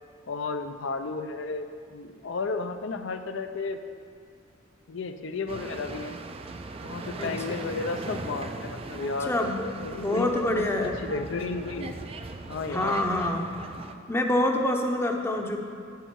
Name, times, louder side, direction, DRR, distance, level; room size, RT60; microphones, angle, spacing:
voice 1, 0.3-1.6 1.9-3.8 4.9-6.2 6.8-9.3 9.8-12.0 12.5-13.0, left 4 dB, 60° left, 8 dB, 0.5 m, -33 dB
sound 1, 5.5-13.9, right 3 dB, 30° right, 0.4 m, -39 dB
voice 2, 9.3-9.7 9.9-10.9 12.7-13.5 14.1-15.6, left 1 dB, 10° left, 3 dB, 0.7 m, -26 dB
9.0 x 8.1 x 4.6 m, 2.3 s
head